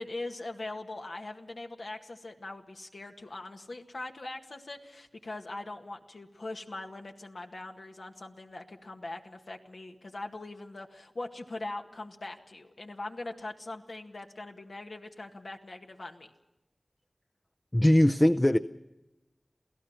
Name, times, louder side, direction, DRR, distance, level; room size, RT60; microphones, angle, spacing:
voice 1, 0.0-16.3, left 2 dB, 70° left, 2 dB, 1.9 m, -41 dB
voice 2, 17.7-18.6, left 1 dB, 20° left, 7 dB, 0.6 m, -21 dB
28.0 x 16.5 x 5.8 m, 0.99 s
wide cardioid pair, 50°, 0 cm